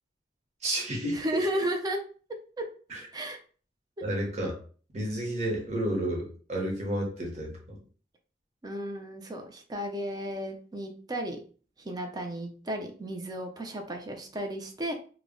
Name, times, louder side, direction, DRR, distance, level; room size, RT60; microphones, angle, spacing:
voice 1, 0.6-1.2 2.9-3.0 4.0-4.6 4.9-7.8, right 1 dB, 40° right, -1 dB, 0.8 m, -31 dB
voice 2, 1.1-2.0 2.6-2.7 3.1-3.4 8.6-11.4 11.8-14.9, equal, 20° right, 4 dB, 0.4 m, -34 dB
2.1 x 2.0 x 3.6 m, 0.41 s
head